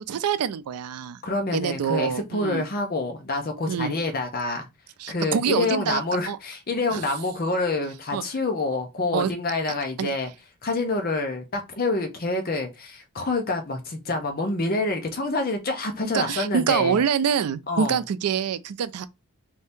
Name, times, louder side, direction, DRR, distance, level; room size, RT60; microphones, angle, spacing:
voice 1, 0.1-1.2 1.5-2.7 3.7-3.9 5.0-6.0 6.3-6.4 6.9-7.0 8.1-8.2 9.1-9.3 10.0-10.1 16.0-19.1, right 7 dB, 90° right, 0.4 m, -25 dB
voice 2, 1.2-4.7 5.1-10.3 10.6-17.0 17.7-18.0, left 2 dB, 40° left, 0.7 m, -27 dB
2.7 x 2.7 x 3.4 m
head